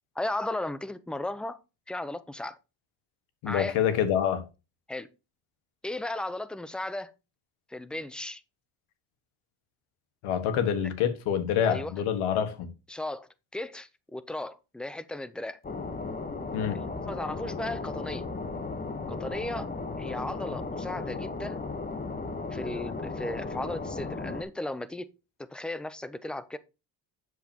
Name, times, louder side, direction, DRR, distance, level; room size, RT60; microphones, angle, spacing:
voice 1, 0.2-1.6 1.9-2.6 3.4-3.8 4.9-5.1 5.8-7.1 7.7-8.4 11.6-11.9 12.9-15.6 16.7-18.2 19.1-19.7 20.0-21.6 22.5-25.1 25.4-26.6, left 1 dB, ahead, 0.5 m, -35 dB
voice 2, 3.4-4.4 10.2-12.7 16.5-16.8, left 9 dB, 85° left, 1.6 m, -26 dB
sound 1, 15.6-24.4, left 3 dB, 20° left, 1.0 m, -35 dB
8.3 x 7.2 x 2.9 m
cardioid pair, 115°, 49 cm